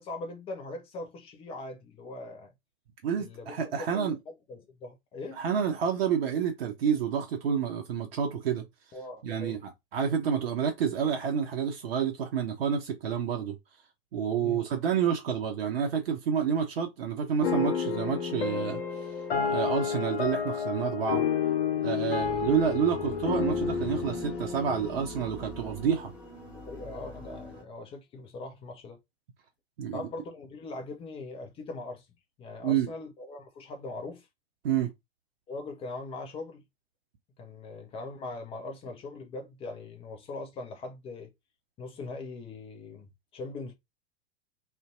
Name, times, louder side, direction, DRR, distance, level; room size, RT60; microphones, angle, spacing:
voice 1, 0.0-2.5 3.2-5.4 8.9-9.6 14.4-14.6 26.5-29.0 29.9-32.1 32.4-34.3 35.5-36.6 37.4-41.3 41.8-43.7, left 2 dB, 20° left, 0.5 m, -41 dB
voice 2, 3.0-4.2 5.4-8.6 9.2-13.6 14.1-19.1 19.5-21.2 21.8-26.1 29.8-30.0 32.6-32.9 34.6-34.9, right 7 dB, 65° right, 0.5 m, -29 dB
sound 1, 17.4-26.0, left 7 dB, 65° left, 0.6 m, -30 dB
sound 2, 22.2-27.6, right 1 dB, 5° right, 0.9 m, -43 dB
2.5 x 2.1 x 2.3 m
figure-of-eight pair, 95°, 32 cm